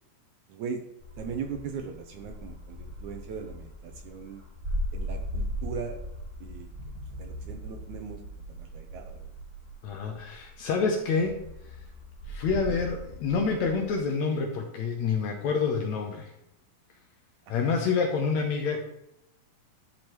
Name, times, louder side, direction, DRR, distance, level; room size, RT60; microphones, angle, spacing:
voice 1, 0.5-0.8 1.2-4.4 4.9-6.0 6.4-6.7 7.2-8.2 8.5-9.2 17.6-17.7, right 6 dB, 75° right, 5 dB, 1.9 m, -39 dB
sound 1, 1.0-10.7 11.2-14.0, left 1 dB, 5° right, 0.9 m, -38 dB
sound 2, 6.7-10.7 11.3-11.4, right 3 dB, 50° right, 2.2 m, -43 dB
voice 2, 9.8-11.4 12.3-16.3 17.5-18.8, left 5 dB, 70° left, 3 dB, 1.8 m, -27 dB
11.5 x 5.1 x 3.0 m, 0.82 s
omnidirectional pair, 3.9 m